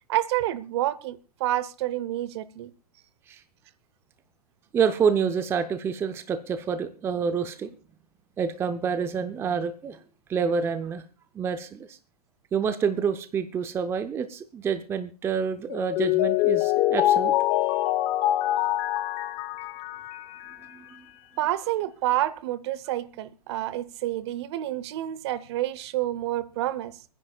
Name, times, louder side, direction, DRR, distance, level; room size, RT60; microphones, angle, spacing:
voice 1, 0.1-2.7 21.4-27.0, right 14 dB, 45° right, 0.8 m, -28 dB
voice 2, 4.7-7.7 8.4-10.0 10.3-11.0 11.3-12.0 12.5-17.3 17.6-17.8 20.7-21.0, right 6 dB, 10° right, 0.6 m, -28 dB
Mallet percussion, 15.7-20.7, left 15 dB, 30° left, 0.7 m, -24 dB
29.0 x 10.0 x 2.3 m
hypercardioid pair, 130°, 19 cm